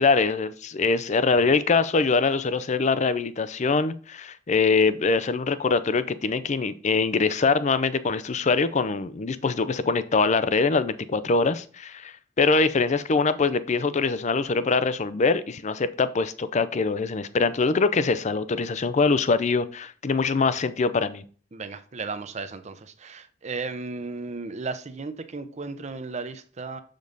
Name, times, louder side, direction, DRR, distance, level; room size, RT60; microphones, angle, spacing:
voice 1, 0.0-21.2, left 4 dB, 40° left, 0.5 m, -23 dB
voice 2, 21.5-26.8, right 4 dB, 40° right, 0.7 m, -35 dB
6.8 x 5.2 x 3.9 m
head